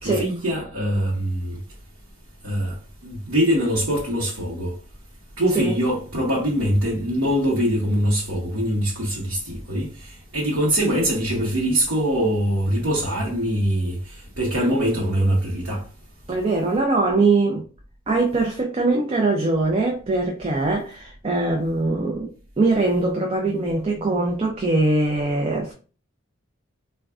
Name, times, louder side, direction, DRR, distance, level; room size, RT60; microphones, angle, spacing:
voice 1, 0.0-1.6 2.4-2.8 3.0-4.7 5.4-14.0 14.4-15.8, equal, 85° right, 0.9 m, -23 dB
voice 2, 16.3-17.6 18.1-22.3 22.6-25.7, right 2 dB, 30° right, 0.4 m, -22 dB
3.5 x 2.2 x 2.4 m
head